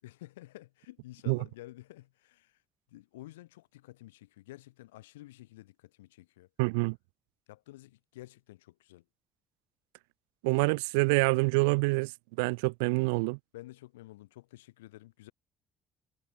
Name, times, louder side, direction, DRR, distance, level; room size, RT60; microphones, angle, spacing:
voice 1, 0.0-2.6 2.9-6.5 7.5-9.0 13.5-15.3, left 17 dB, 80° left, 7.3 m, -51 dB
voice 2, 6.6-7.0 10.4-12.1 12.4-13.4, right 29 dB, 75° right, 0.4 m, -26 dB
hypercardioid pair, 50°, 0 cm